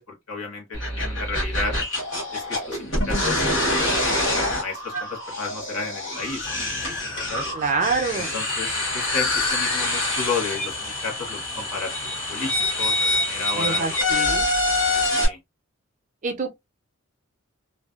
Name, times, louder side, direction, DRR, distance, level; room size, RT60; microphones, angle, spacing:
voice 1, 0.0-1.8 2.3-7.5 8.1-12.5 12.8-14.4 15.2-15.4, left 4 dB, 85° left, 1.2 m, -33 dB
sound 1, 0.7-15.3, left 2 dB, 55° left, 1.2 m, -25 dB
sound 2, 6.4-14.0, left 2 dB, 20° left, 0.5 m, -42 dB
voice 2, 7.5-8.4 13.6-14.5 16.2-16.5, right 4 dB, 35° right, 0.5 m, -26 dB
2.5 x 2.2 x 2.4 m
head